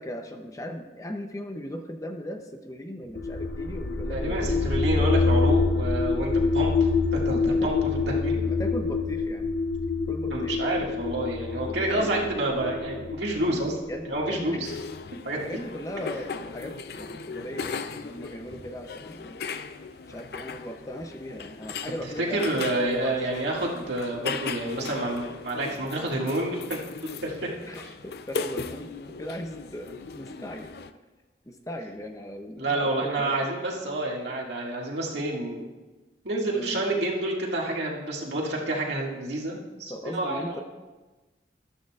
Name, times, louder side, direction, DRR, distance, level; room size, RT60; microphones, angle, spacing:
voice 1, 0.0-5.2 6.2-6.4 7.4-9.5 10.1-11.0 11.5-12.4 13.9-14.6 15.3-19.4 20.1-23.5 27.7-30.7 31.5-33.6 36.5-36.8 39.9-40.6, equal, 20° left, 5 dB, 0.6 m, -38 dB
sound 1, 3.1-14.9, left 4 dB, 80° left, 0.8 m, -26 dB
voice 2, 4.1-8.4 10.3-13.8 14.0-14.7 15.2-15.4 22.2-27.3 32.6-35.7 36.2-40.6, right 1 dB, 75° right, -3 dB, 2.0 m, -29 dB
sound 2, 14.6-30.9, left 5 dB, 60° left, 0.5 m, -38 dB
13.5 x 12.0 x 2.4 m, 1.2 s
head